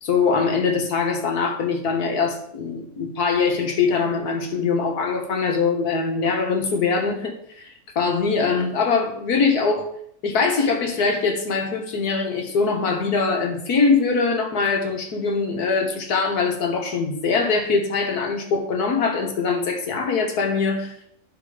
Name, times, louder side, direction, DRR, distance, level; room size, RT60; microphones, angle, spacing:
voice 1, 0.0-7.7 8.0-9.9 10.2-20.9, left 4 dB, 70° left, 3 dB, 1.8 m, -22 dB
10.5 x 4.4 x 5.0 m, 0.69 s
omnidirectional pair, 1.7 m